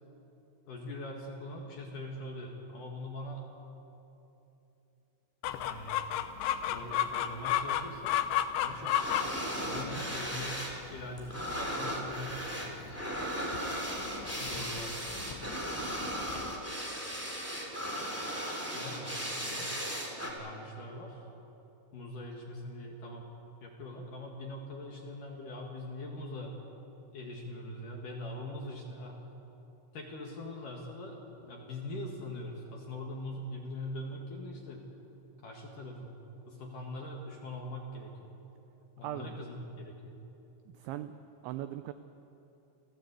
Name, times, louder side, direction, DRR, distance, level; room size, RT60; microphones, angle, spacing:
voice 1, 0.7-3.5 5.5-6.1 6.6-8.2 8.5-9.3 9.6-12.8 14.4-15.2 18.7-19.7 20.2-21.2 21.9-23.3 23.6-26.6 27.1-29.2 29.9-34.9 35.4-36.2 36.5-38.4 39.0-40.2, left 1 dB, 55° left, 0 dB, 2.6 m, -42 dB
Chicken rooster, 5.4-16.5, left 11 dB, 75° left, 2.9 m, -35 dB
sound 1, 8.9-10.8 11.0-20.3, equal, 5° right, 1.6 m, -36 dB
voice 2, 40.8-41.2 41.4-41.9, right 13 dB, 85° right, 10 dB, 2.6 m, -38 dB
28.0 x 16.0 x 8.2 m, 2.9 s
omnidirectional pair, 6.0 m